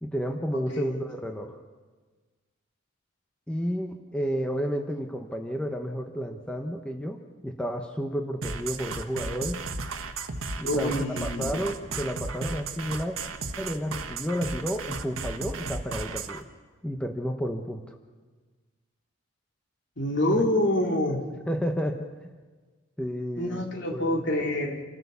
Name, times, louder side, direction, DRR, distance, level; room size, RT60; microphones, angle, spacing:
voice 1, 0.0-1.6 3.5-9.6 10.6-10.9 11.2-13.1 13.6-16.5 16.8-18.0 20.3-20.5 21.1-21.2 21.5-22.1 23.0-23.6 23.9-24.2, equal, 5° left, 3 dB, 0.9 m, -31 dB
sound 1, 8.4-16.4, right 4 dB, 90° right, 1.4 m, -34 dB
voice 2, 10.6-11.6 20.0-21.2 23.4-24.8, left 1 dB, 60° left, 1 dB, 3.0 m, -27 dB
28.0 x 14.0 x 6.9 m, 1.4 s
head